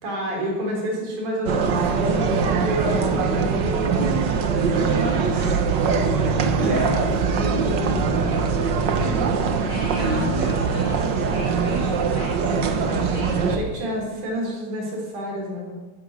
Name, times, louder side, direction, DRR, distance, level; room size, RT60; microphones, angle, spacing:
voice 1, 0.0-4.0 6.6-8.1 9.9-10.3 12.6-13.1 13.4-15.7, equal, 75° right, -1 dB, 5.5 m, -29 dB
sound 1, 1.5-13.6, right 5 dB, 55° right, 1.2 m, -22 dB
voice 2, 4.9-5.6 8.2-8.6 9.0-13.6, right 2 dB, 15° left, -4 dB, 6.8 m, -36 dB
15.5 x 14.0 x 6.5 m, 1.3 s
omnidirectional pair, 3.5 m